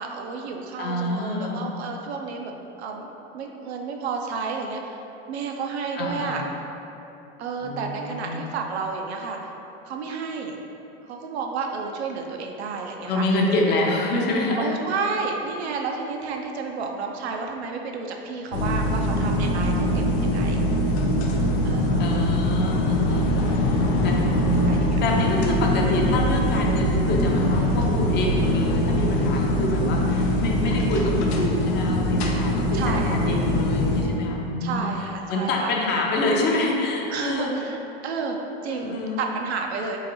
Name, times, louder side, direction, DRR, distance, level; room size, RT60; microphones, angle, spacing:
voice 1, 0.0-2.5 2.8-3.1 3.3-5.0 5.3-6.4 7.4-9.4 9.8-10.6 11.0-13.2 13.7-13.8 14.6-20.6 21.6-22.0 24.2-25.0 32.7-33.2 34.6-35.7 37.1-37.8 38.0-38.4 38.6-40.0, right 4 dB, 90° right, 2 dB, 0.5 m, -31 dB
voice 2, 0.8-1.7 6.0-6.5 7.6-8.4 13.1-14.7 22.0-34.9 35.3-37.5 38.7-39.2, left 1 dB, 35° left, -1 dB, 0.5 m, -26 dB
sound 1, 18.5-34.0, left 1 dB, 90° left, 0.5 m, -22 dB
3.7 x 2.5 x 2.9 m, 3.0 s
hypercardioid pair, 105°, 31 cm